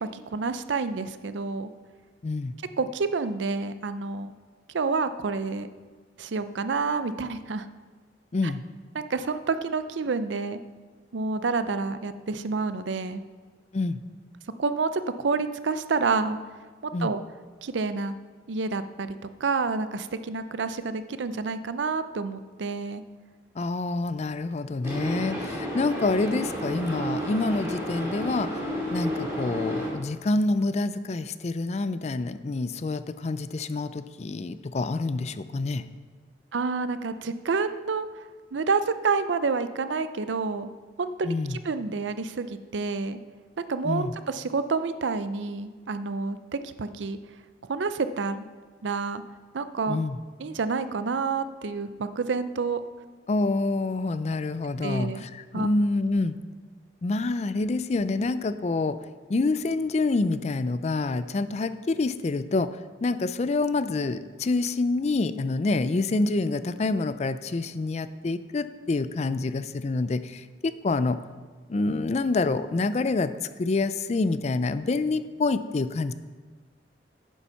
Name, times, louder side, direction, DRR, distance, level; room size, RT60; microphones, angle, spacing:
voice 1, 0.0-1.7 2.8-4.3 4.7-5.7 6.2-7.7 8.4-8.5 8.9-10.6 11.1-13.2 14.6-16.4 16.8-17.2 17.6-18.1 18.5-19.2 19.4-23.0 36.5-38.1 38.5-40.7 41.0-43.2 43.7-46.4 46.6-47.2 47.7-48.5 48.8-49.2 49.5-50.0 50.4-52.8 54.8-55.2 55.5-55.7, right 4 dB, 85° right, 11 dB, 0.5 m, -28 dB
voice 2, 2.2-2.5 8.3-8.6 13.7-14.0 16.9-17.1 23.6-28.5 28.9-35.9 41.2-41.6 43.8-44.1 49.9-50.2 53.3-56.3 57.0-59.0 59.3-62.7 63.0-71.2 71.7-73.3 73.6-76.1, left 3 dB, 35° left, 13 dB, 0.4 m, -27 dB
sound 1, 24.8-29.9, equal, 15° right, 2.5 m, -31 dB
9.3 x 7.1 x 5.7 m, 1.4 s
head